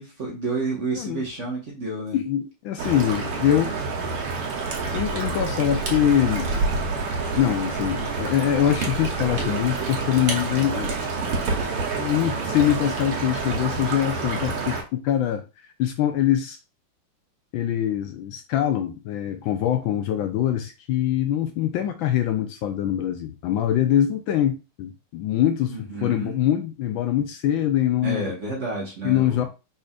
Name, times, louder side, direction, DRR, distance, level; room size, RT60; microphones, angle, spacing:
voice 1, 0.0-2.2 25.7-26.4 28.0-29.5, right 3 dB, 40° right, -3 dB, 1.5 m, -30 dB
voice 2, 0.9-1.3 2.1-3.7 4.9-6.5 7.3-10.9 12.0-15.4 15.8-16.6 17.5-28.3 29.0-29.4, left 11 dB, 75° left, 7 dB, 1.2 m, -23 dB
sound 1, 2.8-14.8, right 3 dB, 85° right, 2.1 m, -27 dB
5.1 x 4.2 x 2.4 m, 0.29 s
omnidirectional pair, 2.4 m